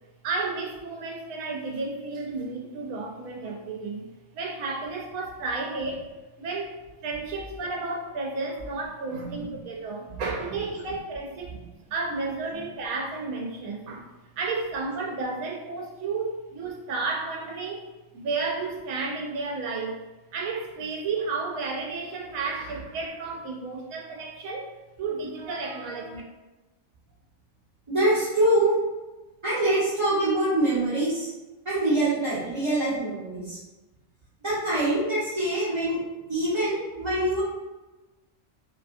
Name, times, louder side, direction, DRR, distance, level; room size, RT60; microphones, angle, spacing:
voice 1, 0.2-4.1 4.3-6.1 6.4-11.6 11.9-20.0 20.3-24.7 25.0-26.2, right 3 dB, 90° right, -1 dB, 1.1 m, -32 dB
voice 2, 9.2-9.5 27.9-28.7 29.4-31.3 31.6-33.6 34.4-36.0 36.3-37.4, right 1 dB, 25° right, -13 dB, 1.1 m, -24 dB
3.3 x 2.8 x 2.6 m, 1.1 s
omnidirectional pair, 1.4 m